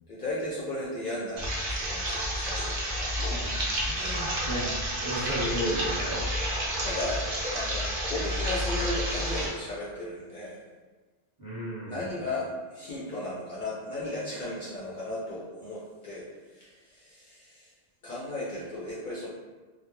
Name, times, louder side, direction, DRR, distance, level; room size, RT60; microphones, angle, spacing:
voice 1, 0.1-3.1 3.9-4.3 6.8-10.6 11.8-16.2 16.5-17.7 18.0-19.3, left 1 dB, 60° left, -7 dB, 0.6 m, -35 dB
sound 1, 1.4-9.5, equal, 55° right, 0.7 m, -30 dB
voice 2, 3.8-6.2 11.4-12.0, equal, 20° right, -10 dB, 0.8 m, -33 dB
2.3 x 2.1 x 2.9 m, 1.3 s
omnidirectional pair, 1.0 m